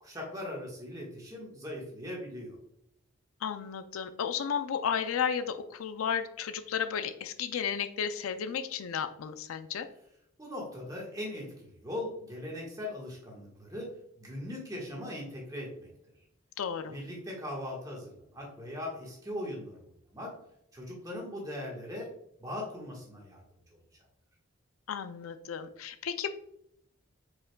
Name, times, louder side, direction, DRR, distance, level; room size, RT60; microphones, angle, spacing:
voice 1, 0.0-2.6 10.4-13.9 14.2-15.9 16.9-19.9 20.1-20.3 20.7-22.1 22.4-23.4 23.7-23.8, left 1 dB, 15° right, -3 dB, 1.4 m, -39 dB
voice 2, 3.4-9.9 16.6-17.0 24.9-26.3, left 7 dB, 85° left, 10 dB, 0.4 m, -33 dB
4.9 x 4.9 x 2.2 m, 0.75 s
head